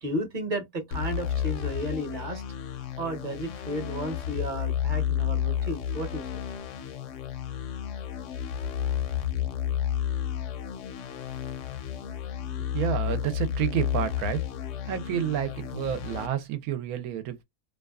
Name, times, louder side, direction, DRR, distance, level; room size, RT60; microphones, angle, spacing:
voice 1, 0.0-2.4 2.7-6.3, right 1 dB, 40° right, 0.9 m, -33 dB
sound 1, 0.9-16.3, left 9 dB, 70° left, 0.8 m, -31 dB
voice 2, 12.6-14.4 14.8-17.4, right 10 dB, 80° right, 1.1 m, -30 dB
2.7 x 2.3 x 2.3 m
omnidirectional pair, 1.6 m